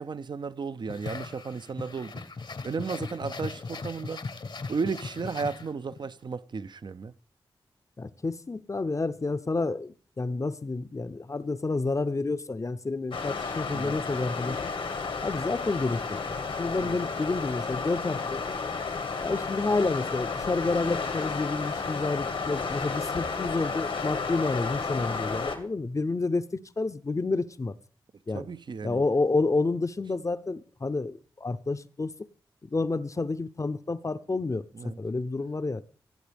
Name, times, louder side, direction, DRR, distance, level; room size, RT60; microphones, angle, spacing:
voice 1, 0.0-2.2 2.6-4.2 4.7-7.1 13.7-14.0 16.7-17.0 28.3-29.0 34.7-35.0, right 5 dB, 55° right, 0.5 m, -34 dB
sound 1, 0.9-6.1, left 4 dB, 60° left, 0.9 m, -38 dB
voice 2, 8.0-14.7 15.2-16.0 16.3-18.4 19.2-27.7 28.3-28.5 28.8-32.1 32.6-34.6 35.0-35.8, left 3 dB, 35° left, 0.6 m, -29 dB
sound 2, 13.1-25.6, left 4 dB, 80° left, 1.4 m, -32 dB
18.0 x 8.0 x 3.4 m
cardioid pair, 40°, 9 cm